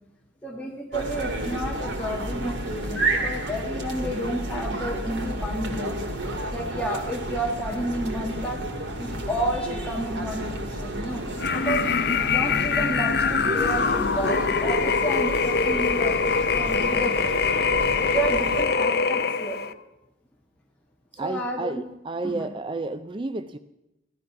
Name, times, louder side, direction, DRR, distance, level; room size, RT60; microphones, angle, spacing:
voice 1, 0.4-6.0 6.5-8.6 9.0-11.2 11.5-11.8 12.3-17.3 18.0-19.8 21.1-21.8 22.2-22.4, right 1 dB, 5° left, -2 dB, 1.6 m, -31 dB
sound 1, 0.9-18.6, right 1 dB, 90° right, 2.0 m, -31 dB
sound 2, 11.4-19.7, left 5 dB, 60° left, 0.5 m, -23 dB
voice 2, 21.1-23.6, right 3 dB, 25° right, 10 dB, 0.4 m, -31 dB
15.5 x 12.0 x 5.9 m, 0.92 s
head